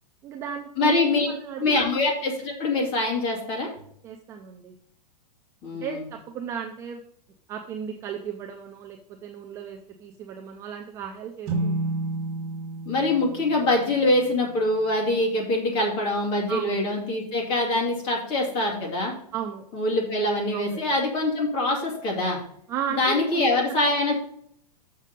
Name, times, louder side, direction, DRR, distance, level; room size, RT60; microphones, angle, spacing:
voice 1, 0.2-1.7 4.0-4.7 5.8-7.0 7.5-11.9 16.5-16.8 19.3-19.6 20.5-20.9 22.7-23.6, right 8 dB, 15° right, 4 dB, 0.4 m, -35 dB
voice 2, 0.8-1.3 1.6-3.7 5.6-6.0 12.9-19.1 19.7-22.4 23.0-24.2, left 2 dB, 25° left, -1 dB, 2.5 m, -24 dB
sound 1, 11.5-15.0, right 2 dB, 30° right, 2.0 m, -32 dB
6.6 x 6.3 x 5.2 m, 0.66 s
supercardioid pair, 170°, 21 cm